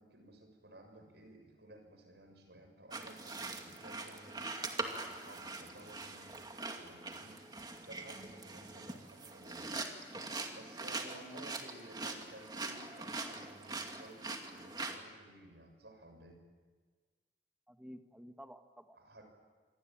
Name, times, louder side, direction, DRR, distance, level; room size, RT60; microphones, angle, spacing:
voice 1, 0.0-7.4 7.9-9.7 10.5-16.4 18.9-19.2, right 2 dB, 75° right, 5 dB, 6.8 m, -56 dB
sound 1, 2.9-15.0, right 3 dB, 25° right, 2.4 m, -43 dB
voice 2, 11.2-11.8 17.7-19.0, equal, 5° right, 6 dB, 1.7 m, -53 dB
27.5 x 23.5 x 9.0 m, 1.5 s
head